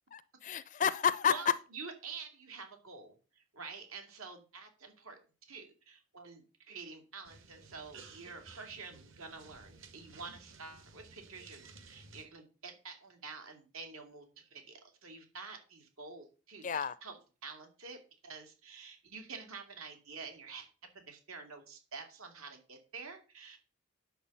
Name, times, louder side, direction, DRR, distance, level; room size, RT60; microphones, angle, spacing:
voice 1, 0.1-1.5 16.6-17.0, left 7 dB, 35° left, 0.4 m, -30 dB
voice 2, 1.3-5.2 5.5-23.6, right 4 dB, 80° right, 2.6 m, -48 dB
sound 1, 7.2-12.3, right 4 dB, 65° right, 1.7 m, -55 dB
10.0 x 7.1 x 5.5 m
head